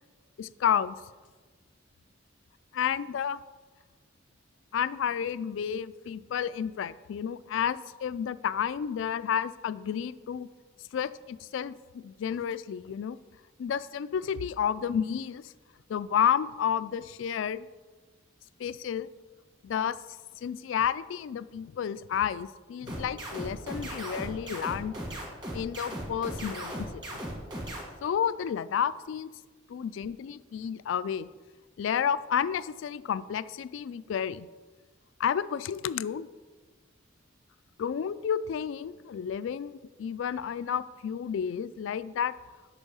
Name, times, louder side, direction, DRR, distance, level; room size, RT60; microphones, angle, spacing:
voice 1, 0.4-1.0 2.7-3.4 4.7-10.5 10.9-13.2 13.6-15.5 15.9-17.7 18.6-19.1 19.6-20.0 20.4-25.0 25.5-27.2 28.0-29.3 29.7-31.3 31.8-34.5 35.2-36.3 37.8-42.3, left 8 dB, 70° left, 16 dB, 0.3 m, -31 dB
sound 1, 22.9-27.8, right 1 dB, 20° right, 1.8 m, -37 dB
8.0 x 5.6 x 5.5 m, 1.3 s
head